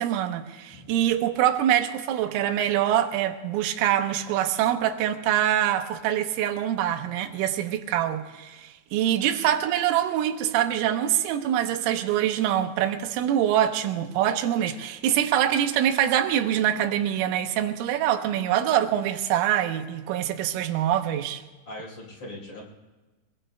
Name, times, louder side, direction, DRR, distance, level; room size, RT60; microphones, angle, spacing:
voice 1, 0.0-21.4, right 11 dB, 90° right, 3.4 m, -24 dB
voice 2, 21.7-22.6, left 1 dB, 30° left, 4.8 m, -40 dB
25.0 x 22.0 x 2.2 m
omnidirectional pair, 5.7 m